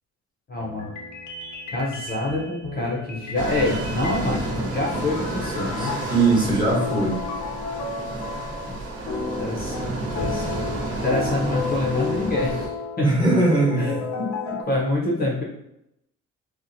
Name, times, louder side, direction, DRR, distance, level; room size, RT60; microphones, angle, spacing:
voice 1, 0.5-0.9 1.7-6.0 8.7-8.8 9.4-10.6 11.0-13.1 13.8-15.4, left 2 dB, 30° left, -3 dB, 0.6 m, -26 dB
sound 1, 0.6-8.8 9.1-14.6, left 4 dB, 70° left, 0.6 m, -33 dB
sound 2, 3.4-12.7, right 2 dB, 50° right, 0.8 m, -31 dB
voice 2, 5.8-7.2 13.0-14.0, right 2 dB, 15° right, -4 dB, 1.0 m, -20 dB
2.8 x 2.1 x 2.5 m, 0.81 s
cardioid pair, 90°, 30 cm